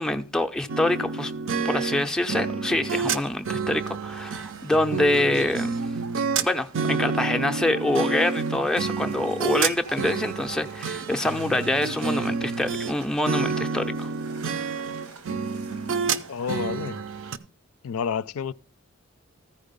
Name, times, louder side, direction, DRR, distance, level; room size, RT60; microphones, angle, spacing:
voice 1, 0.0-1.3 1.6-5.8 6.4-14.1, left 1 dB, 5° left, 0.4 m, -25 dB
sound 1, 0.7-12.9 13.3-17.4, right 5 dB, 60° right, 0.5 m, -29 dB
sound 2, 3.8-17.3, right 4 dB, 85° right, 1.2 m, -46 dB
voice 2, 16.3-17.0 17.8-18.5, left 7 dB, 90° left, 0.4 m, -29 dB
14.0 x 4.8 x 5.3 m
head